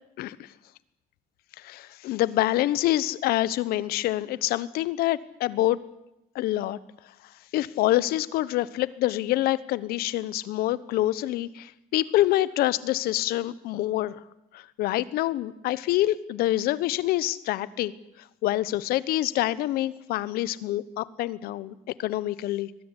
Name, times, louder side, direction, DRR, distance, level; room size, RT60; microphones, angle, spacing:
voice 1, 0.2-0.5 1.6-5.8 6.3-6.8 7.5-14.2 14.5-17.9 18.4-22.7, left 15 dB, 70° left, 18 dB, 1.1 m, -26 dB
22.5 x 20.5 x 9.9 m, 0.88 s
cardioid pair, 150°, 16 cm